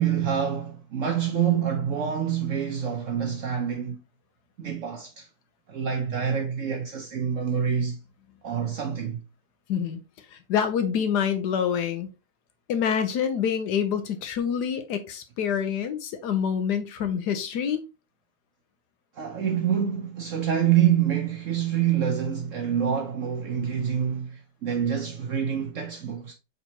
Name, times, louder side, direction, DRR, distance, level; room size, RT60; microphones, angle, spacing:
voice 1, 0.0-4.0 4.6-5.3 5.7-8.0 8.4-9.2 19.2-26.3, right 8 dB, 60° right, 0.8 m, -26 dB
voice 2, 9.7-10.0 10.3-12.1 12.7-17.8, left 8 dB, 70° left, 1.2 m, -26 dB
4.4 x 4.0 x 2.8 m
omnidirectional pair, 1.9 m